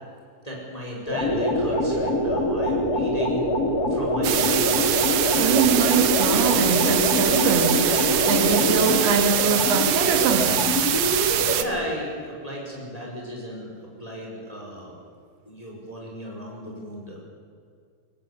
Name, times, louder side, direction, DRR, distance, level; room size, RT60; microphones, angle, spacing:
voice 1, 0.4-3.5 3.9-4.7 5.4-5.9 11.5-13.7 14.0-15.0 15.5-17.2, equal, 10° left, -2 dB, 5.2 m, -35 dB
sound 1, 1.1-11.6, left 1 dB, 30° left, 2.4 m, -24 dB
sound 2, 4.2-11.6, right 10 dB, 70° right, 1.5 m, -24 dB
voice 2, 5.4-7.9 8.3-10.7, right 5 dB, 85° right, 5 dB, 4.4 m, -23 dB
23.0 x 18.5 x 8.4 m, 2.2 s
omnidirectional pair, 4.4 m